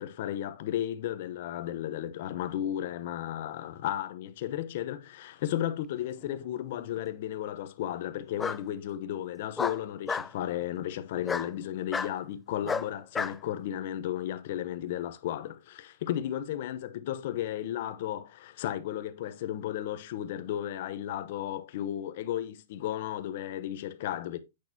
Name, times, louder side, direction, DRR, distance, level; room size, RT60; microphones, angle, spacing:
voice 1, 0.0-24.4, left 11 dB, 55° left, 0.8 m, -34 dB
Bark, 6.2-6.9 8.4-8.6 9.6-10.3 11.2-11.5 11.9-12.1 12.7-13.4, left 5 dB, 10° left, 0.3 m, -32 dB
8.5 x 6.2 x 2.7 m
hypercardioid pair, 145°, 0 cm